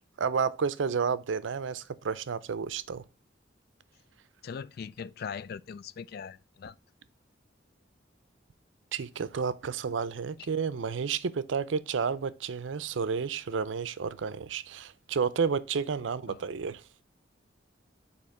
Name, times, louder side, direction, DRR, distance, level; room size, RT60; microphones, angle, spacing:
voice 1, 0.2-3.0 8.9-16.8, right 6 dB, 90° right, 0.5 m, -31 dB
voice 2, 4.4-6.8 16.3-16.4, left 6 dB, 55° left, 0.3 m, -40 dB
8.6 x 3.0 x 4.7 m
head